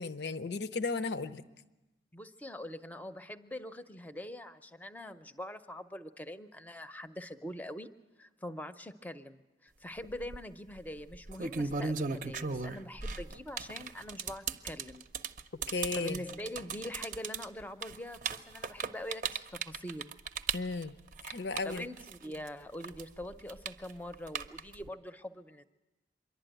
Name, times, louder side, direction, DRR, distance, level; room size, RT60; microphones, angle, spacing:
voice 1, 0.0-1.4 15.7-16.2 20.5-20.9 21.2-21.9, left 3 dB, 75° left, 13 dB, 0.7 m, -35 dB
voice 2, 2.1-7.9 8.2-15.1 15.7-20.2 21.6-25.6, left 1 dB, 10° left, 10 dB, 0.6 m, -43 dB
sound 1, 10.0-10.4 11.1-22.5 22.8-24.9, right 5 dB, 45° right, 0.6 m, -36 dB
25.5 x 11.5 x 9.0 m, 1.1 s
head